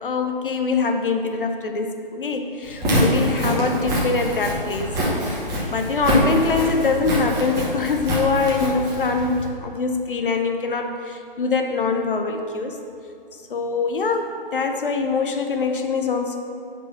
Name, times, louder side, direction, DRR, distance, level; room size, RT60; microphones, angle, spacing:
voice 1, 0.0-4.9 5.2-12.8 13.5-16.4, left 4 dB, 65° left, 5 dB, 0.8 m, -24 dB
Walk footsteps, 2.7-9.5, equal, 10° right, 1.0 m, -24 dB
5.8 x 5.4 x 5.7 m, 2.4 s
figure-of-eight pair, 140°, 29 cm